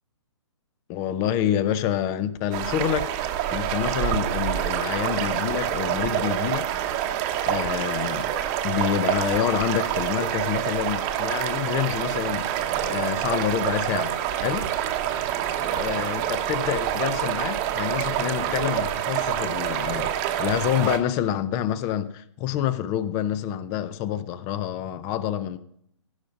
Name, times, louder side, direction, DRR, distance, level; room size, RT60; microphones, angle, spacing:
voice 1, 0.9-6.7 7.4-8.3 8.6-12.4 12.9-14.7 15.7-20.1 20.4-25.6, left 10 dB, 20° left, 0.5 m, -27 dB
sound 1, 2.5-21.0, right 11 dB, 25° right, 1.0 m, -27 dB
16.0 x 5.6 x 5.2 m
hypercardioid pair, 145°, 16 cm